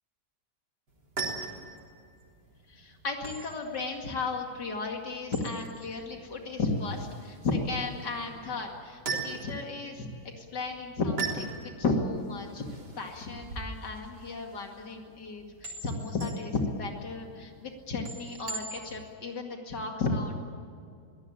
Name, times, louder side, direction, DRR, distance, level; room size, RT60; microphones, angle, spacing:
sound 1, 0.9-19.1, right 4 dB, 80° right, 4.3 m, -41 dB
voice 1, 2.7-10.1 10.4-12.6 13.0-20.4, left 3 dB, 90° left, 2 dB, 2.8 m, -34 dB
23.0 x 18.0 x 9.0 m, 2.3 s
omnidirectional pair, 1.8 m